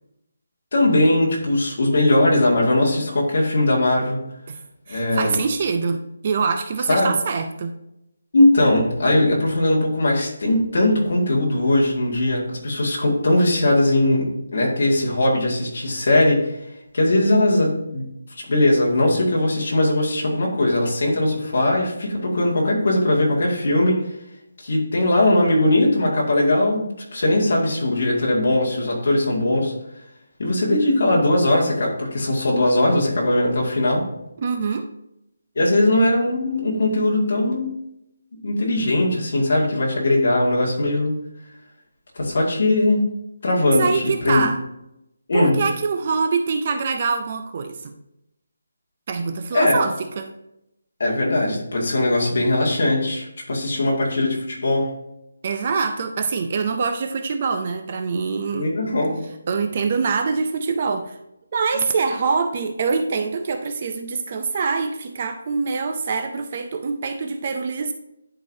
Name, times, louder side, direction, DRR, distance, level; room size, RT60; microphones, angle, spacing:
voice 1, 0.7-4.2 4.9-5.4 6.9-7.1 8.3-16.6 16.9-18.0 18.3-24.0 24.6-29.7 30.4-34.1 35.6-37.7 38.4-41.2 42.1-43.1 43.4-44.4 45.3-45.6 49.5-49.8 51.0-54.9 58.5-59.2, left 1 dB, 45° left, -3 dB, 2.1 m, -20 dB
voice 2, 4.9-7.7 34.4-34.9 43.7-44.6 45.3-47.9 49.1-50.3 55.4-58.7 59.5-61.2 61.5-67.9, right 5 dB, 30° right, 7 dB, 0.4 m, -24 dB
11.0 x 4.8 x 2.7 m, 0.85 s
hypercardioid pair, 175°, 0 cm